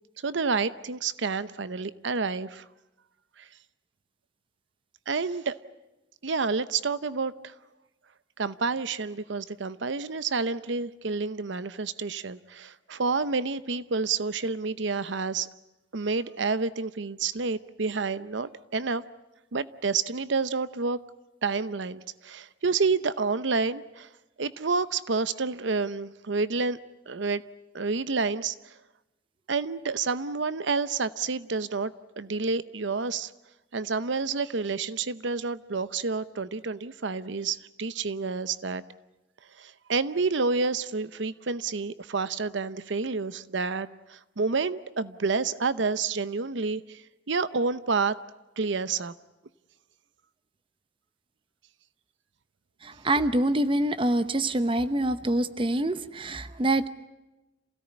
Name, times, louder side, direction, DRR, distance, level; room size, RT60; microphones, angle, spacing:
voice 1, 0.2-2.6 3.4-3.5 5.1-5.6 6.2-7.5 8.4-15.5 15.9-19.0 19.5-21.0 21.4-24.1 24.4-26.8 27.1-27.4 27.7-28.5 29.5-33.3 33.7-38.8 39.6-48.2 48.6-49.1, right 4 dB, 70° right, 15 dB, 0.8 m, -29 dB
voice 2, 52.8-56.9, right 1 dB, 25° right, 12 dB, 0.8 m, -25 dB
27.5 x 17.0 x 9.8 m, 1.0 s
head